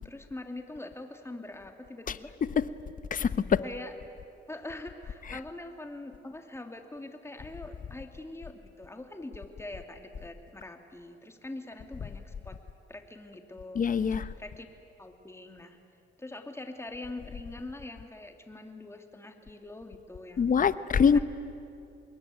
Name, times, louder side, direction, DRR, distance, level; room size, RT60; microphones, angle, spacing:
voice 1, 0.0-2.4 3.6-3.9 4.5-12.6 12.9-13.9 14.4-14.7 15.0-15.8 16.2-20.6 21.1-21.2, left 2 dB, 15° left, 2.7 m, -43 dB
voice 2, 3.1-3.6 13.7-14.3 20.4-21.2, left 6 dB, 45° left, 1.0 m, -24 dB
26.5 x 21.5 x 9.4 m
cardioid pair, 90°, 20 cm